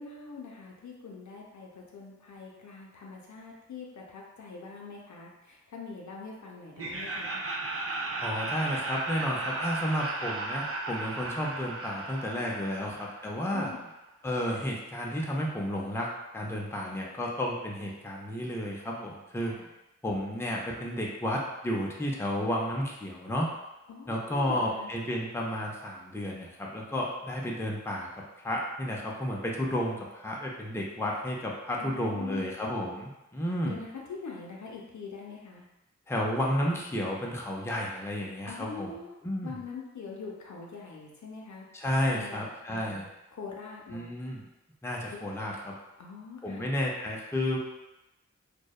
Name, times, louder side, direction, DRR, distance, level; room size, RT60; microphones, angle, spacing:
voice 1, 0.0-7.4 13.5-13.9 19.4-19.7 23.9-24.9 31.8-32.5 33.6-35.7 38.5-39.1 39.4-41.7 42.1-44.1 45.1-45.4 46.0-46.7, left 4 dB, 75° left, -2 dB, 0.5 m, -43 dB
Laughter, 6.8-13.7, right 3 dB, 50° right, 0.4 m, -35 dB
voice 2, 8.1-13.7 14.2-16.1 16.3-19.5 20.0-23.5 24.1-28.1 28.4-33.8 36.1-38.9 39.2-39.5 41.7-43.1 43.9-44.4 44.8-45.7 46.4-47.6, equal, 10° left, -2 dB, 0.4 m, -32 dB
2.7 x 2.0 x 2.3 m, 0.96 s
wide cardioid pair, 45°, 30 cm